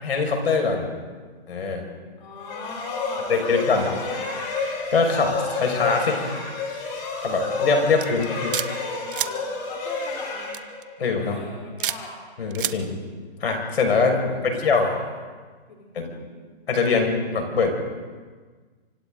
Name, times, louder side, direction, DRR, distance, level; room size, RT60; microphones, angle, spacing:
voice 1, 0.0-0.9 1.5-1.8 3.3-3.9 4.9-6.2 7.2-8.5 11.0-11.4 12.4-12.9 13.4-14.9 15.9-16.2 16.7-17.7, left 4 dB, 70° left, 2 dB, 5.8 m, -22 dB
voice 2, 2.2-4.4 8.0-10.5 11.2-12.1 14.2-15.1 15.7-16.3, left 3 dB, 45° left, -1 dB, 3.7 m, -39 dB
sound 1, 2.4-11.2, left 4 dB, 25° left, 4.4 m, -31 dB
sound 2, 8.0-8.7 9.1-9.3 10.5-10.8 11.8-12.0 12.5-12.7, right 10 dB, 55° right, 0.9 m, -27 dB
27.5 x 25.5 x 3.9 m, 1.5 s
hypercardioid pair, 165°, 32 cm